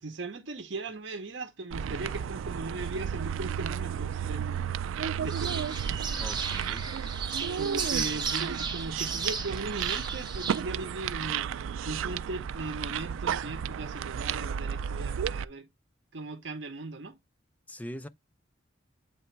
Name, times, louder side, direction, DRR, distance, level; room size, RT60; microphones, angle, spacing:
voice 1, 0.0-4.6 5.2-5.7 7.6-15.7 16.1-17.2, right 2 dB, 65° right, 0.8 m, -38 dB
sound 1, 1.7-15.4, right 8 dB, 85° right, 0.3 m, -33 dB
sound 2, 5.3-10.6, right 5 dB, 20° right, 1.2 m, -35 dB
voice 2, 6.2-7.0 17.7-18.1, equal, 10° left, 0.4 m, -42 dB
8.3 x 3.0 x 4.5 m
head